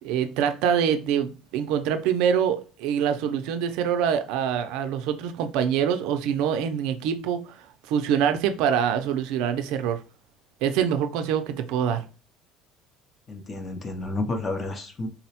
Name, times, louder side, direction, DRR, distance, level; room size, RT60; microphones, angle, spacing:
voice 1, 0.0-10.0 10.6-12.0, right 8 dB, 70° right, 8 dB, 0.4 m, -25 dB
voice 2, 13.3-15.1, left 2 dB, 20° left, 6 dB, 0.4 m, -30 dB
3.8 x 2.0 x 2.7 m, 0.34 s
cardioid pair, 170°, 0 cm